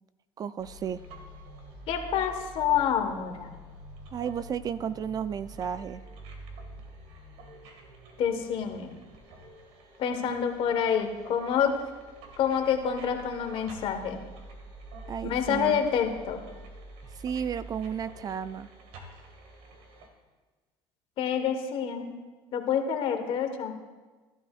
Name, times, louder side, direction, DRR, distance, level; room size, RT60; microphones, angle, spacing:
voice 1, 0.4-1.0 4.1-6.0 15.1-15.9 17.2-18.7, right 8 dB, 35° right, 15 dB, 0.3 m, -33 dB
sound 1, 0.6-20.1, right 1 dB, 75° right, 2.0 m, -47 dB
voice 2, 1.9-3.5 8.2-8.9 10.0-11.8 12.4-14.2 15.2-16.4 21.2-22.1 22.5-23.7, left 8 dB, 60° left, 5 dB, 1.4 m, -27 dB
14.5 x 12.5 x 2.5 m, 1.3 s
supercardioid pair, 100°, 10 cm